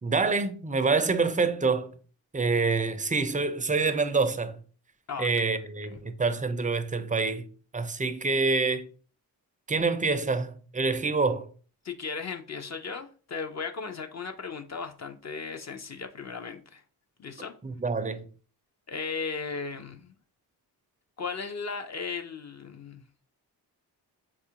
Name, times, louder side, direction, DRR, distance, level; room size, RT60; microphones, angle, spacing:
voice 1, 0.0-1.9 2.3-4.6 5.2-7.4 7.7-8.9 9.7-11.5 17.6-18.2, right 4 dB, 20° right, 0.4 m, -26 dB
voice 2, 11.8-16.8 17.2-17.5 18.9-20.1 21.2-23.0, left 5 dB, 40° left, 0.5 m, -36 dB
4.1 x 2.4 x 2.8 m
cardioid pair, 50°, 42 cm